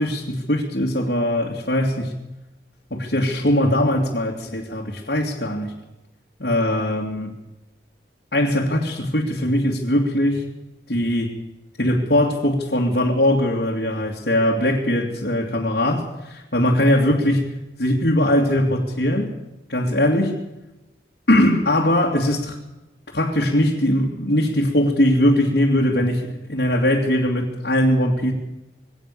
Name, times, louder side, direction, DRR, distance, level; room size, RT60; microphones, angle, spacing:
voice 1, 0.0-2.2 2.9-5.7 6.4-7.3 8.3-10.4 10.9-11.3 11.8-17.5 17.8-19.4 19.7-20.4 21.3-22.6 23.1-28.3, left 1 dB, 65° left, -2 dB, 2.7 m, -20 dB
22.0 x 17.5 x 7.0 m, 0.98 s
head